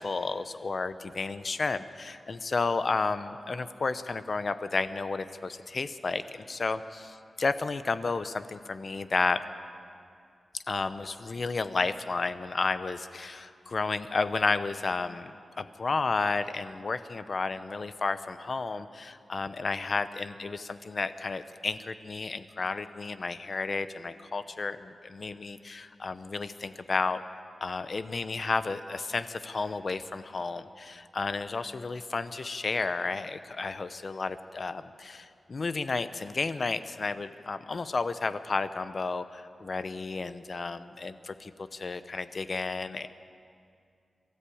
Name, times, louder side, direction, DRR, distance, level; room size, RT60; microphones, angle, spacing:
voice 1, 0.0-9.4 10.7-27.2 27.6-43.1, left 4 dB, 45° left, 12 dB, 0.8 m, -32 dB
23.0 x 13.5 x 8.6 m, 2.4 s
wide cardioid pair, 115°, 0 cm